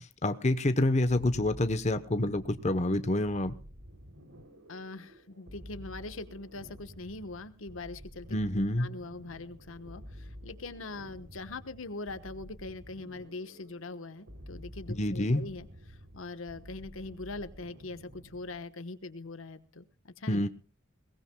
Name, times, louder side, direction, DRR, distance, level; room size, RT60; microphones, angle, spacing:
voice 1, 0.0-3.6 8.3-8.9 14.9-15.4 20.3-20.5, left 1 dB, 35° left, 0.9 m, -28 dB
sound 1, 1.1-18.7, equal, 85° right, 3.1 m, -50 dB
voice 2, 4.7-8.4 8.8-20.4, left 3 dB, 85° left, 1.2 m, -42 dB
22.0 x 18.5 x 2.3 m
head